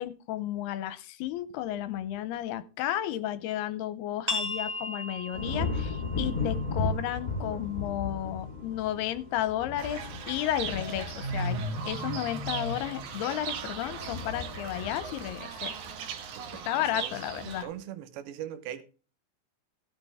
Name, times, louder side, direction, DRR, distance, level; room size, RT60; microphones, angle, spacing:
voice 1, 0.0-15.8 16.7-17.7, left 12 dB, 80° left, 2.5 m, -33 dB
sound 1, 4.3-9.6, left 2 dB, 15° right, 1.8 m, -39 dB
sound 2, 5.3-16.6 17.1-17.5, left 3 dB, 35° left, 1.4 m, -36 dB
Fowl / Bird, 9.8-17.6, right 4 dB, 65° right, 2.1 m, -37 dB
voice 2, 16.4-18.8, right 11 dB, 90° right, 3.3 m, -42 dB
16.0 x 8.8 x 3.5 m
omnidirectional pair, 4.9 m